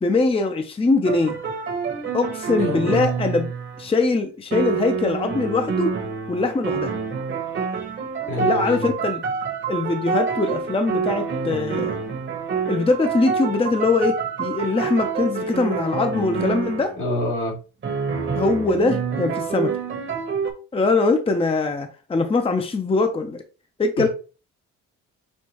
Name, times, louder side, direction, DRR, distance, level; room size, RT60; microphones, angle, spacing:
voice 1, 0.0-1.4 2.1-3.5 3.8-5.9 6.3-6.9 8.4-9.2 9.7-12.0 12.7-16.9 18.3-19.7 20.7-23.4 23.8-24.1, left 3 dB, 20° left, 0.7 m, -22 dB
sound 1, 1.0-3.9 4.5-16.9 17.8-20.5, right 5 dB, 40° right, 1.2 m, -27 dB
voice 2, 2.6-3.0 8.3-8.9 17.0-17.6 24.0-24.1, left 1 dB, 80° left, 2.4 m, -27 dB
6.4 x 2.4 x 2.9 m
cardioid pair, 90°, 30 cm